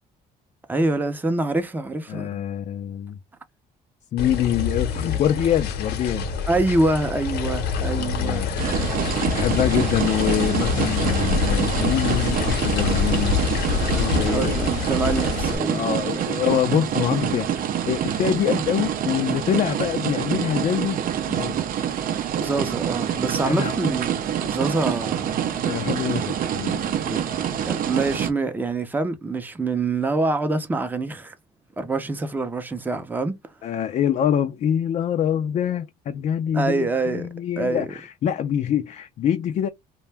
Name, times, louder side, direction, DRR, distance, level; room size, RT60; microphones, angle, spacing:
voice 1, 0.7-2.3 5.0-5.2 6.5-8.5 14.2-16.3 22.4-24.1 24.4-25.7 27.0-27.2 27.7-31.4 31.8-33.4 36.5-37.3 37.6-37.9, right 2 dB, 10° right, 0.6 m, -25 dB
voice 2, 2.1-3.2 4.1-6.3 8.0-8.8 9.3-13.4 13.9-14.6 15.6-21.0 21.3-21.7 23.4-23.8 25.7-26.9 33.6-39.7, left 9 dB, 45° left, 0.4 m, -25 dB
sound 1, 4.2-15.6, left 5 dB, 70° left, 0.8 m, -26 dB
sound 2, 8.6-28.3, right 9 dB, 55° right, 0.5 m, -26 dB
2.6 x 2.2 x 3.2 m
cardioid pair, 110°, 17 cm